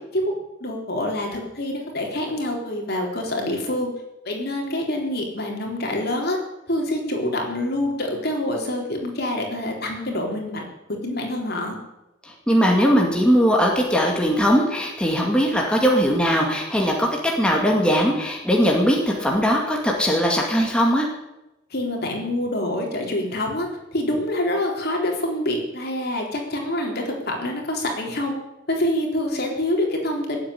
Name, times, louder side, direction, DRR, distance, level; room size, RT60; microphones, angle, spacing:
voice 1, 0.1-3.9 4.2-6.4 6.7-10.6 10.9-11.8 21.7-28.3 28.7-30.4, left 1 dB, 55° left, 1 dB, 3.8 m, -26 dB
voice 2, 12.2-21.1, equal, 5° left, -1 dB, 2.2 m, -20 dB
17.5 x 8.0 x 10.0 m, 0.95 s
head